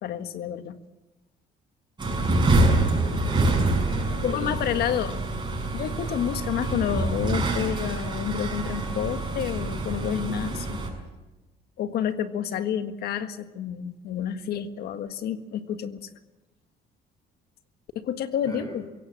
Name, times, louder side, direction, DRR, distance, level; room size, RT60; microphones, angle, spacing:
voice 1, 0.0-0.8 4.2-5.1 5.7-10.8 11.8-16.1 18.0-18.8, left 9 dB, 70° left, 10 dB, 1.7 m, -29 dB
sound 1, 2.0-10.9, right 2 dB, 25° right, 6.2 m, -26 dB
voice 2, 3.0-4.9 18.4-18.7, equal, 20° left, 2 dB, 6.9 m, -38 dB
22.5 x 17.0 x 8.8 m, 1.1 s
cardioid pair, 110°, 17 cm